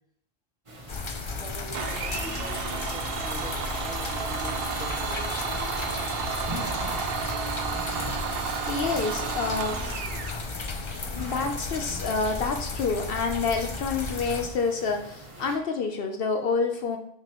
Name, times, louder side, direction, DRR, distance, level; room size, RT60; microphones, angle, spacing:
sound 1, 0.7-15.6, right 1 dB, 30° right, 1.3 m, -44 dB
sound 2, 0.9-14.5, left 3 dB, 35° left, 0.6 m, -34 dB
voice 1, 1.2-5.4, left 1 dB, 5° right, -3 dB, 1.6 m, -43 dB
Domestic sounds home sounds, 1.7-10.4, right 6 dB, 70° right, 0.9 m, -32 dB
voice 2, 8.7-9.8 11.1-17.0, left 4 dB, 70° left, 5 dB, 0.8 m, -28 dB
10.5 x 5.7 x 3.0 m, 0.76 s
omnidirectional pair, 1.0 m